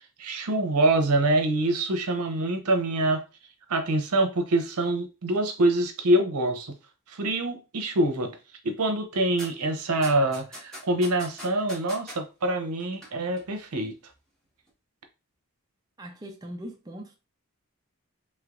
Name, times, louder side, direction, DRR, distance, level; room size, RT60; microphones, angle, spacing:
voice 1, 0.0-3.2 3.7-6.7 7.1-8.3 8.6-13.9, right 1 dB, 85° right, 0.7 m, -25 dB
sound 1, 9.4-9.5 10.0-12.2 12.8-13.1 13.4-13.5, equal, 5° left, 1.2 m, -40 dB
voice 2, 16.0-17.2, equal, 15° right, 0.4 m, -40 dB
3.2 x 3.2 x 2.4 m
head